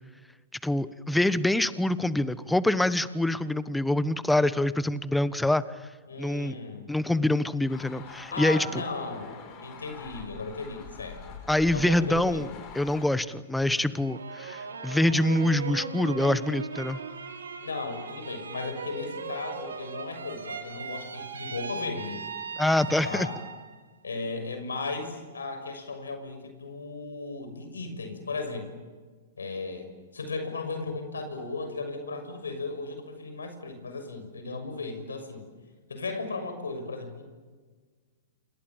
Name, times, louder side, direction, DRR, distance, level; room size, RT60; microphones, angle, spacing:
voice 1, 0.6-5.6 6.2-6.5 6.9-8.8 11.5-12.5 12.7-17.0 22.6-23.3, left 1 dB, 5° left, 15 dB, 1.2 m, -25 dB
voice 2, 6.1-6.9 8.2-9.4 9.6-11.3 11.7-12.6 17.6-22.3 23.0-23.4 24.0-28.7 29.4-35.4 35.9-37.3, left 3 dB, 90° left, 8 dB, 6.4 m, -36 dB
sound 1, 7.7-13.0, left 5 dB, 40° left, 7.4 m, -44 dB
sound 2, 13.9-23.7 24.2-24.8, right 4 dB, 85° right, 3.6 m, -38 dB
28.5 x 28.0 x 7.4 m, 1.5 s
hypercardioid pair, 120°, 0 cm